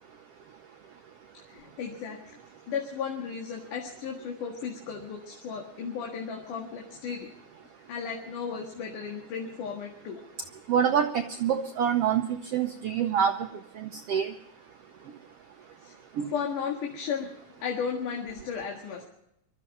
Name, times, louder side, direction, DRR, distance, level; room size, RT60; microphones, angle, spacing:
voice 1, 1.5-2.2 2.7-7.3 7.9-10.2 15.8-16.0 16.3-17.3 17.6-19.1, left 6 dB, 75° left, 0 dB, 3.3 m, -34 dB
voice 2, 10.7-13.3 13.8-14.3 16.2-16.3, right 8 dB, 75° right, 6 dB, 1.4 m, -26 dB
24.0 x 13.0 x 4.1 m, 0.78 s
omnidirectional pair, 3.7 m